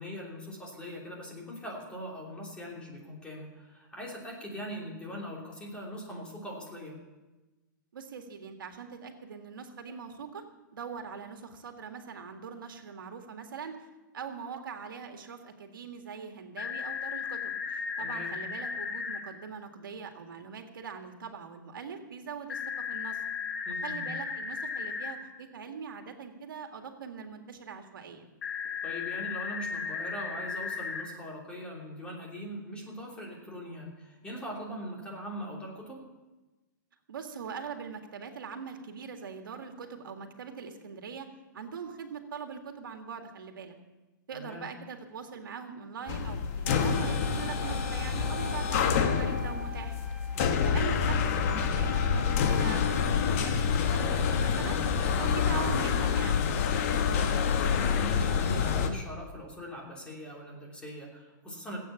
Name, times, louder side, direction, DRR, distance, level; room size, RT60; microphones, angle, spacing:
voice 1, 0.0-7.0 18.0-18.3 23.6-24.1 28.8-36.0 44.3-44.7 50.3-50.6 57.1-61.8, equal, 10° left, -2 dB, 3.1 m, -41 dB
voice 2, 7.9-10.4 10.7-13.7 14.1-23.2 23.8-28.2 37.1-41.3 41.5-43.7 44.3-50.0 50.6-56.4, right 6 dB, 90° right, 5 dB, 1.9 m, -42 dB
sound 1, 16.6-19.2 22.5-25.1 28.4-31.0, left 6 dB, 75° left, 4.4 m, -35 dB
sound 2, 46.1-58.9, left 6 dB, 45° left, 1.2 m, -27 dB
Wind instrument woodwind instrument, 46.6-53.6, left 1 dB, 5° right, 1.1 m, -43 dB
17.5 x 8.6 x 7.0 m, 1.1 s
hypercardioid pair, 155°, 11 cm